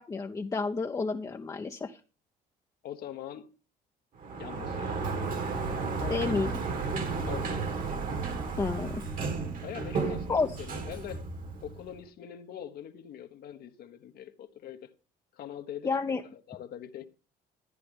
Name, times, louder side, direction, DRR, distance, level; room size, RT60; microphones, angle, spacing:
voice 1, 0.0-2.0 6.1-6.5 8.6-9.0 10.3-10.5 15.8-16.2, left 4 dB, 20° left, 0.6 m, -30 dB
voice 2, 2.8-3.5 4.4-5.0 6.0-6.4 7.3-7.6 9.6-11.2 11.6-14.9 15.3-17.1, left 10 dB, 65° left, 1.1 m, -43 dB
Sliding door, 4.2-12.0, right 4 dB, 55° right, 1.9 m, -33 dB
12.5 x 9.8 x 3.5 m
cardioid pair, 110°, 17 cm